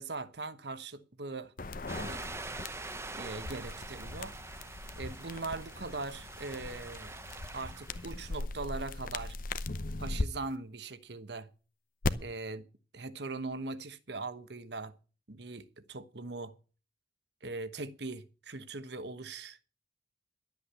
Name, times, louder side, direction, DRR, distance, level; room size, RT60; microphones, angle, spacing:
voice 1, 0.0-1.5 1.9-2.2 3.2-4.3 5.0-7.1 7.5-9.4 10.0-11.5 12.2-12.7 12.9-14.9 15.3-16.5 17.4-19.7, right 3 dB, 65° right, 1.1 m, -40 dB
sound 1, 1.6-10.3 12.0-12.1, left 2 dB, 45° left, 0.8 m, -39 dB
sound 2, 1.9-8.4, right 3 dB, 15° right, 0.7 m, -45 dB
12.0 x 8.5 x 8.1 m
head